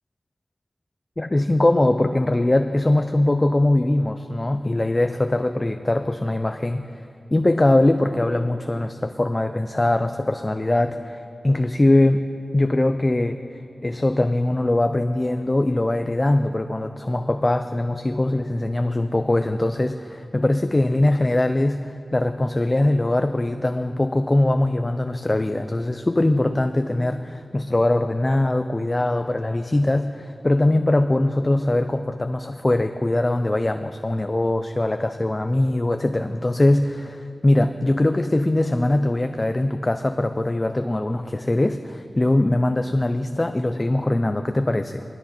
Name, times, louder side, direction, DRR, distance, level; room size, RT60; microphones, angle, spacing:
voice 1, 1.2-6.9 7.3-12.2 12.5-13.4 13.8-45.0, left 1 dB, 30° left, 8 dB, 0.5 m, -21 dB
17.0 x 13.0 x 4.4 m, 2.5 s
wide cardioid pair, 50°, 0 cm